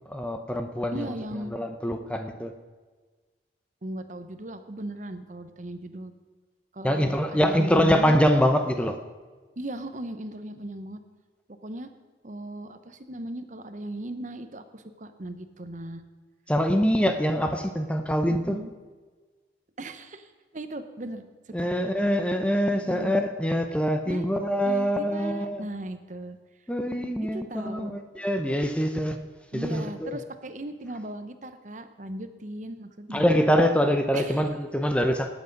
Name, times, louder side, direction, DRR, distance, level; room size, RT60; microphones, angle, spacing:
voice 1, 0.1-1.1 1.5-2.5 6.8-9.0 16.5-18.6 21.5-25.6 26.7-29.2 29.5-30.2 33.1-35.3, equal, 5° left, 6 dB, 0.7 m, -24 dB
voice 2, 0.9-1.5 3.8-6.1 6.7-8.2 9.6-11.0 11.5-11.9 12.2-16.0 18.3-18.7 19.8-21.7 22.7-23.1 24.1-24.3 24.6-26.4 27.2-27.9 29.5-33.4 34.1-34.5, right 1 dB, 40° right, 9 dB, 0.9 m, -37 dB
19.0 x 8.2 x 5.3 m, 1.4 s
head